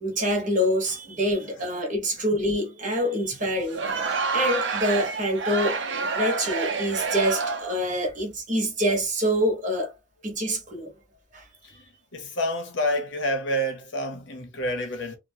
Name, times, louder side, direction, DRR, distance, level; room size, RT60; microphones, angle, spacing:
voice 1, 0.0-4.0 4.3-5.8 6.1-9.9 10.2-10.9 11.3-11.4, equal, 45° right, 1.2 m, -26 dB
Crowd, 3.6-7.8, right 4 dB, 75° right, 0.6 m, -28 dB
voice 2, 12.1-15.2, equal, 80° left, 0.9 m, -28 dB
2.9 x 2.2 x 2.7 m
head